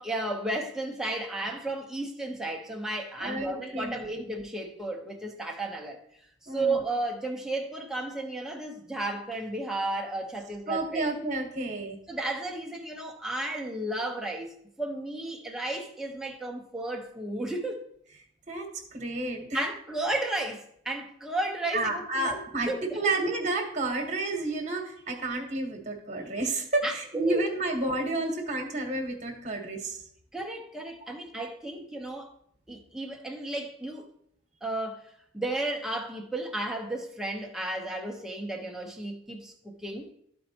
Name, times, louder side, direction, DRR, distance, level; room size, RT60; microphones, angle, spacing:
voice 1, 0.0-6.0 6.5-11.0 12.1-17.8 19.5-22.4 22.7-23.2 26.8-27.4 30.3-32.3 32.7-34.1 34.6-39.5 39.8-40.1, right 2 dB, 5° right, 0.9 m, -33 dB
voice 2, 3.2-4.2 6.5-6.8 10.7-12.0 18.5-19.6 21.7-30.0, right 2 dB, 35° right, 1.3 m, -31 dB
13.0 x 4.4 x 2.9 m
head